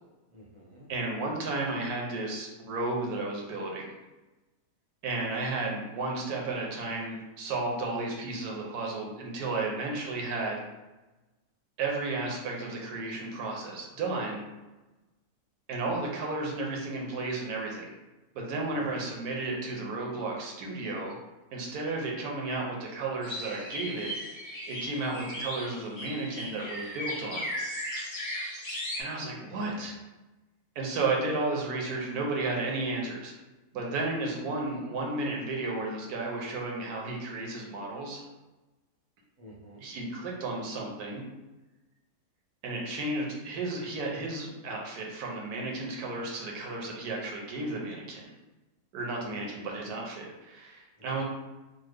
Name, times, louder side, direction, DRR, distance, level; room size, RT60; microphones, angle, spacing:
voice 1, 0.3-0.9 18.7-19.1 29.5-29.9 39.4-39.8 49.2-49.5, equal, 30° right, -4 dB, 0.5 m, -47 dB
voice 2, 0.9-3.9 5.0-10.6 11.8-14.5 15.7-17.9 18.3-21.2 21.5-24.1 24.7-27.4 29.0-29.9 30.8-33.3 33.7-38.2 39.8-41.2 42.6-48.2 48.9-51.2, right 2 dB, 80° right, -1 dB, 1.2 m, -33 dB
sound 1, 23.2-29.0, equal, 30° left, 0.5 m, -37 dB
3.2 x 2.0 x 3.4 m, 1.1 s
omnidirectional pair, 1.6 m